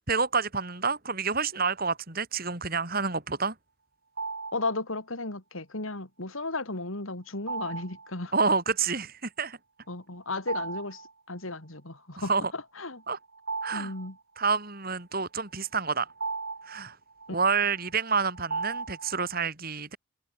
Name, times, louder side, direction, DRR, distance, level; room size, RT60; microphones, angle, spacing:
voice 1, 0.1-3.5 8.3-9.6 12.2-12.5 13.1-13.2 13.6-13.9 14.4-16.1 16.7-16.9 17.3-20.0, right 5 dB, 45° right, 4.0 m, -28 dB
sound 1, 4.2-4.8 7.5-8.1 10.4-11.1 11.5-11.6 13.0-14.6 15.5-19.4, right 4 dB, 70° right, 3.7 m, -37 dB
voice 2, 4.5-8.3 9.9-11.0 11.3-13.0 13.7-14.2, left 2 dB, 75° left, 3.5 m, -34 dB
head